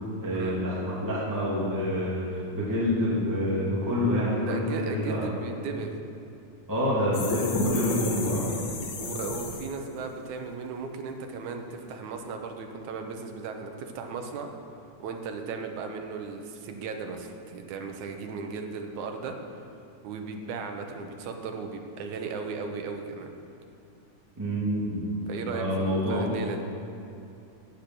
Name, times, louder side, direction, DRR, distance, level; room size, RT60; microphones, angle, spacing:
voice 1, 0.2-5.3 6.7-8.5 24.4-25.1 25.4-26.3, equal, 5° right, -7 dB, 2.1 m, -27 dB
voice 2, 4.4-5.9 9.0-14.5 15.0-19.6 20.0-23.3 25.3-26.6, right 5 dB, 70° right, 4 dB, 2.3 m, -36 dB
sound 1, 7.1-9.9, left 3 dB, 65° left, 2.4 m, -32 dB
13.5 x 8.8 x 6.1 m, 2.7 s
omnidirectional pair, 3.7 m